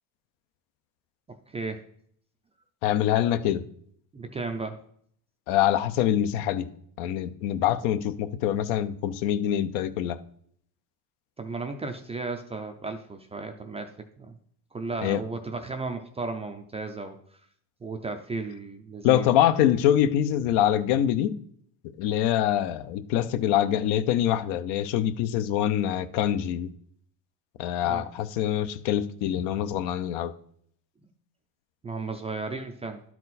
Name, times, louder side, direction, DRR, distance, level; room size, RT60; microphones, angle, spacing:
voice 1, 1.5-1.8 4.1-4.8 11.4-13.9 14.2-14.4 14.7-17.2 17.8-19.5 27.8-28.0 31.8-33.0, right 3 dB, 15° right, 6 dB, 0.3 m, -34 dB
voice 2, 2.8-3.6 5.5-6.7 7.0-10.2 15.0-15.2 19.0-21.4 22.0-26.7 27.6-30.3, left 11 dB, 80° left, 11 dB, 0.8 m, -24 dB
11.5 x 4.6 x 4.1 m, 0.64 s
cardioid pair, 140°, 45 cm